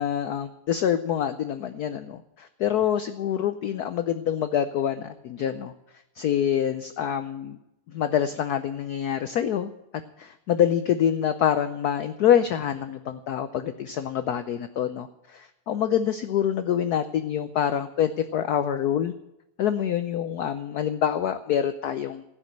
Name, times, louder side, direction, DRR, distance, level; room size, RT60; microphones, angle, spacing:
voice 1, 0.0-5.7 6.2-7.6 7.9-9.7 10.2-19.1 19.6-22.2, left 9 dB, 85° left, 10 dB, 0.8 m, -26 dB
16.0 x 6.4 x 9.1 m, 0.90 s
omnidirectional pair, 2.4 m